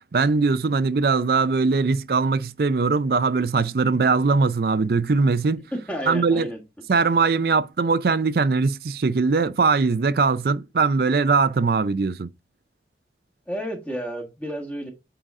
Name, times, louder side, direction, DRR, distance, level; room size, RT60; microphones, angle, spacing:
voice 1, 0.1-5.6 6.1-6.5 6.9-12.3, right 4 dB, 55° right, 0.4 m, -21 dB
voice 2, 5.7-6.6 13.5-14.9, equal, 10° left, 1.6 m, -31 dB
8.9 x 3.9 x 3.7 m
head